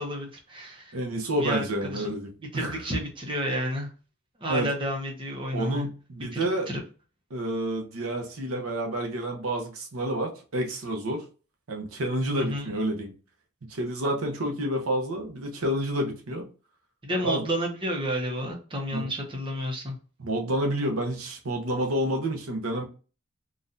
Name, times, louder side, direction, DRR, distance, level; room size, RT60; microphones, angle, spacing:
voice 1, 0.0-0.9 1.4-2.1 2.5-3.9 4.4-5.9 6.3-6.4 6.7-6.8 12.4-12.7 17.0-20.0, equal, 25° right, 0 dB, 0.8 m, -31 dB
voice 2, 0.9-2.8 4.5-4.7 5.5-6.7 7.3-11.2 11.7-13.1 13.7-16.5 17.2-17.5 18.9-19.1 20.2-22.8, right 1 dB, 85° right, 3 dB, 0.8 m, -29 dB
4.0 x 2.4 x 2.6 m, 0.37 s
head